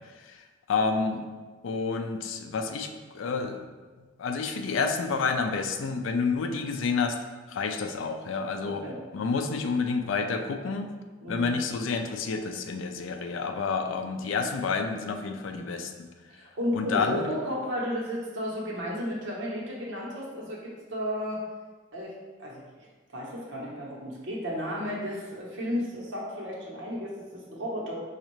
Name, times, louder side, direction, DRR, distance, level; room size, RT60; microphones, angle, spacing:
voice 1, 0.7-1.2 1.6-3.6 4.2-7.2 7.5-8.8 9.1-10.9 11.3-16.1 16.7-17.2, left 4 dB, 80° left, 5 dB, 0.4 m, -29 dB
voice 2, 8.6-9.0 11.2-11.5 16.3-21.4 21.9-22.1 22.4-22.9 23.1-27.9, equal, 75° right, -4 dB, 1.0 m, -33 dB
5.2 x 2.4 x 3.0 m, 1.3 s
head